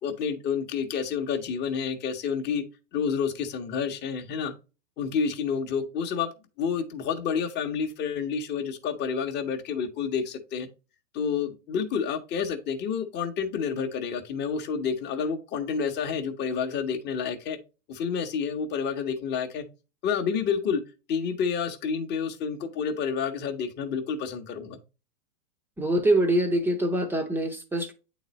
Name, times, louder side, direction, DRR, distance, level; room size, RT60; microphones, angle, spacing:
voice 1, 0.0-2.6 2.9-4.5 5.0-6.3 6.6-10.7 11.1-17.6 17.9-19.7 20.0-20.8 21.1-24.8, left 6 dB, 20° left, 1.0 m, -29 dB
voice 2, 25.8-27.9, right 1 dB, 5° right, 0.7 m, -24 dB
9.0 x 4.0 x 3.0 m
hypercardioid pair, 145°, 47 cm